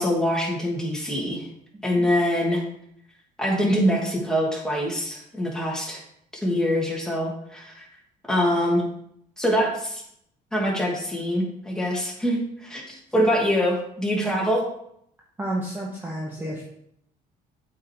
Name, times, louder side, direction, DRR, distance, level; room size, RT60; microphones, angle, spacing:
voice 1, 0.0-1.4 1.8-2.6 3.4-6.0 6.4-7.9 8.3-8.9 9.4-10.0 10.5-14.6, equal, 5° left, -3 dB, 2.7 m, -24 dB
voice 2, 1.7-2.1 15.4-16.7, right 1 dB, 10° right, -3 dB, 1.5 m, -31 dB
8.3 x 5.5 x 4.7 m, 0.72 s
cardioid pair, 110°, 17 cm